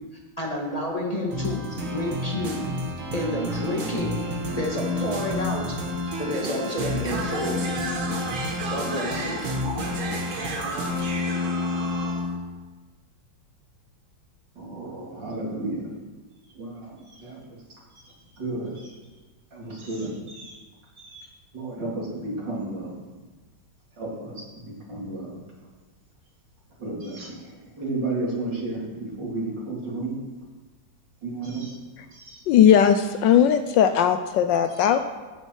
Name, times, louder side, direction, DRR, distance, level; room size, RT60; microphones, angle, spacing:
voice 1, 0.4-2.6 3.1-4.2 4.6-5.8 6.2-7.7 8.7-9.4, left 1 dB, 20° left, -2 dB, 1.6 m, -29 dB
sound 1, 1.3-12.4, left 1 dB, 80° right, 2.5 m, -29 dB
voice 2, 14.5-15.9 16.5-17.6 17.9-19.0 19.5-20.6 21.0-21.3 21.5-23.0 24.0-25.4 26.8-30.2 31.2-31.7 32.1-32.4, right 2 dB, 60° right, -4 dB, 3.4 m, -33 dB
voice 3, 32.5-35.0, left 9 dB, 75° left, 9 dB, 1.2 m, -18 dB
12.5 x 8.8 x 4.6 m, 1.3 s
omnidirectional pair, 2.2 m